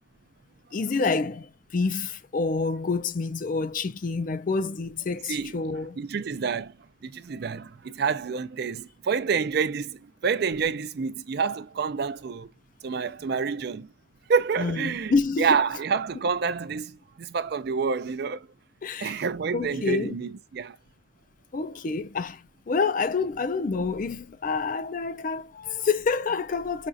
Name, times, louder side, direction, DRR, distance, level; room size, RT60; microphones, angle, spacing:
voice 1, 0.7-1.5 1.7-6.0 14.6-15.6 18.8-19.2 19.5-20.2 21.5-22.4 22.7-26.9, left 4 dB, 40° left, 0.4 m, -27 dB
voice 2, 5.3-6.7 7.0-12.5 12.8-13.9 14.3-15.1 15.4-18.5 19.0-20.8, right 5 dB, 50° right, 0.4 m, -28 dB
5.1 x 2.4 x 2.5 m
head